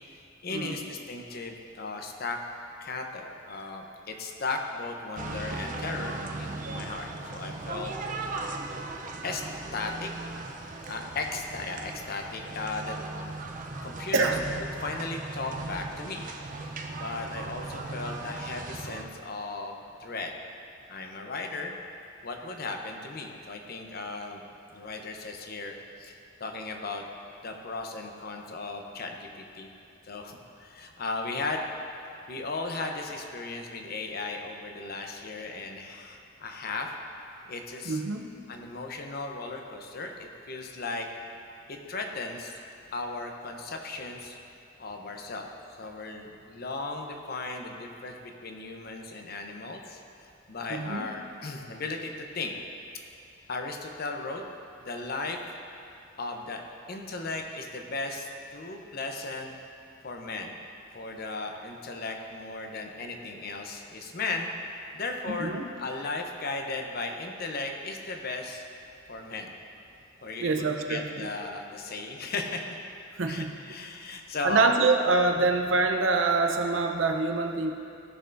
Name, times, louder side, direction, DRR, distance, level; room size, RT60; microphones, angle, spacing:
voice 1, 0.4-2.4 2.8-8.0 9.2-9.4 9.7-10.1 10.9-13.0 13.8-14.3 14.8-16.2 17.0-20.3 20.9-21.7 22.2-24.4 24.7-27.0 27.4-29.7 30.0-31.7 32.3-36.9 37.5-38.0 38.5-41.1 41.7-42.6 42.9-44.4 44.8-45.5 45.8-50.0 50.5-52.5 53.5-54.4 54.8-55.4 56.2-56.6 56.9-59.5 60.0-60.5 60.9-64.5 64.9-68.6 69.1-69.5 70.2-72.7 73.2-74.7 75.4-75.5, left 3 dB, 55° left, 3 dB, 0.8 m, -36 dB
sound 1, 5.2-19.0, right 2 dB, 45° right, 0.6 m, -38 dB
voice 2, 37.8-38.3 50.7-51.0 65.3-65.7 70.4-71.3 73.2-73.5 74.4-77.7, right 3 dB, 85° right, 4 dB, 0.7 m, -25 dB
15.5 x 6.7 x 2.6 m, 2.6 s
head